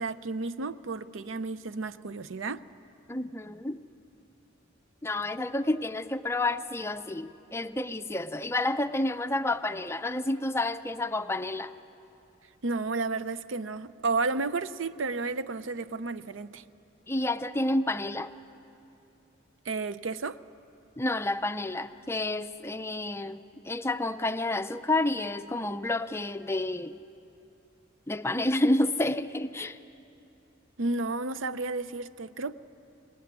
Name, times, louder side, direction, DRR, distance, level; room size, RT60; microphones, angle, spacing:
voice 1, 0.0-2.6 12.6-16.6 19.7-20.4 30.8-32.5, right 3 dB, 70° right, 0.6 m, -32 dB
voice 2, 3.1-3.8 5.0-11.7 17.1-18.3 21.0-27.0 28.1-29.8, left 2 dB, 15° left, 0.5 m, -29 dB
24.5 x 20.0 x 9.6 m
head